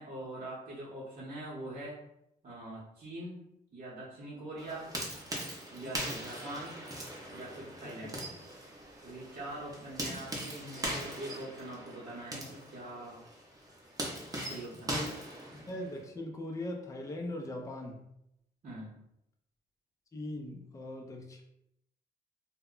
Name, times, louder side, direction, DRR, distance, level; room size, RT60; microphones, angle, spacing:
voice 1, 0.0-2.0 2.4-3.4 3.7-4.9 5.7-6.8 7.3-8.2 9.0-13.2 14.4-15.0 18.6-19.0, right 1 dB, 50° right, -9 dB, 0.8 m, -43 dB
sound 1, 4.6-16.0, right 1 dB, 20° right, 0.7 m, -41 dB
voice 2, 5.8-6.2 7.8-8.1 10.0-10.1 14.9-15.2 15.7-18.1 20.1-21.4, left 1 dB, 20° left, 1 dB, 0.4 m, -40 dB
2.1 x 2.1 x 3.7 m, 0.81 s
cardioid pair, 95°, 17 cm